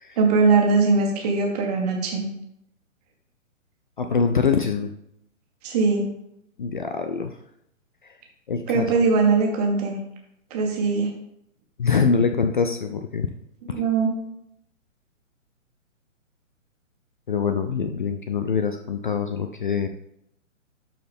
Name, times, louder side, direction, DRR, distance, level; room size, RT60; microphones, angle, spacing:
voice 1, 0.2-2.2 5.6-6.1 8.7-10.0 10.5-11.1 13.6-14.1, right 4 dB, 30° right, 1 dB, 1.7 m, -21 dB
voice 2, 4.0-4.9 6.6-7.3 8.5-9.1 11.8-13.3 13.7-13.8 17.3-19.9, left 5 dB, 40° left, 7 dB, 0.5 m, -24 dB
12.5 x 4.6 x 3.7 m, 0.77 s
figure-of-eight pair, 130°, 40 cm